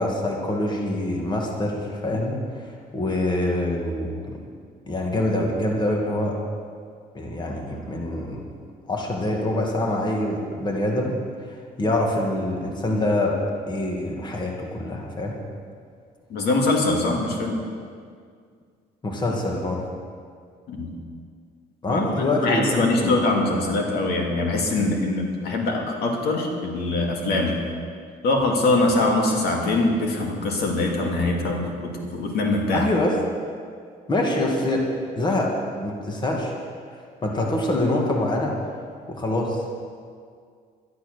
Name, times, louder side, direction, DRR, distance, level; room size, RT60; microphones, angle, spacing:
voice 1, 0.0-4.4 4.9-6.4 7.1-8.5 8.9-13.4 13.7-15.4 19.0-19.9 21.8-23.2 32.7-33.2 34.1-34.9 35.2-35.6 35.8-36.5 37.2-38.6 39.1-39.6, left 1 dB, 25° left, 0 dB, 2.1 m, -25 dB
voice 2, 16.3-17.6 20.7-21.0 21.9-27.6 28.2-32.9, left 2 dB, 70° left, 0 dB, 2.4 m, -23 dB
12.0 x 11.5 x 6.5 m, 2.1 s
cardioid pair, 110°, 17 cm